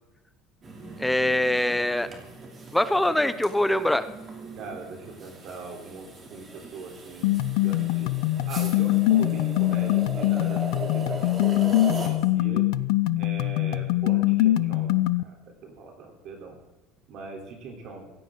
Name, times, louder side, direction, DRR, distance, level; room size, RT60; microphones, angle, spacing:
sound 1, 0.6-12.1, right 3 dB, 25° right, 2.8 m, -40 dB
voice 1, 1.0-2.1 2.7-4.1, left 1 dB, 5° left, 13 dB, 0.6 m, -23 dB
voice 2, 4.5-8.1 8.4-12.7 13.2-16.6 17.1-18.1, right 4 dB, 45° right, 1 dB, 3.3 m, -41 dB
sound 2, 7.2-15.2, left 16 dB, 85° left, 0.5 m, -23 dB
17.0 x 16.5 x 3.8 m, 0.98 s
cardioid pair, 170°, 0 cm